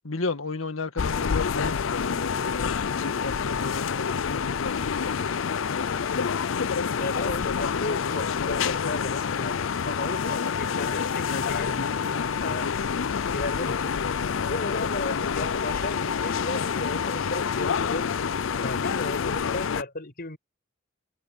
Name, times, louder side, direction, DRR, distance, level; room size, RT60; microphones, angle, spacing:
voice 1, 0.0-5.3, left 3 dB, 90° left, 1.9 m, -34 dB
sound 1, 1.0-19.8, left 6 dB, 70° left, 0.5 m, -27 dB
voice 2, 6.9-12.7 13.3-14.0 14.5-18.1 18.6-20.4, left 2 dB, 50° left, 6.6 m, -35 dB
head